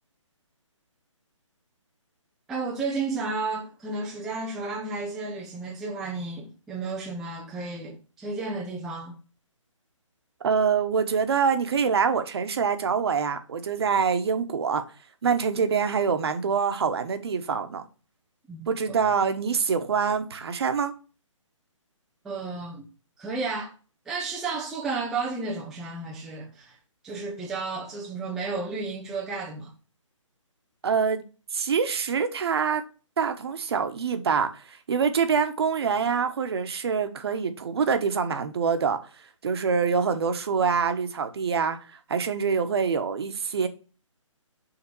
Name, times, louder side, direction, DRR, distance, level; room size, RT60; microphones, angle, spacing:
voice 1, 2.5-9.2 18.5-19.0 22.2-22.9 23.2-23.7 24.1-26.8 27.0-29.7, right 3 dB, ahead, 0.4 m, -32 dB
voice 2, 10.4-14.8 15.2-17.8 18.7-20.9 30.8-31.2 31.5-32.8 33.2-39.0 39.4-43.7, right 6 dB, 50° right, 1.1 m, -25 dB
5.9 x 3.6 x 5.3 m
hypercardioid pair, 160°, 17 cm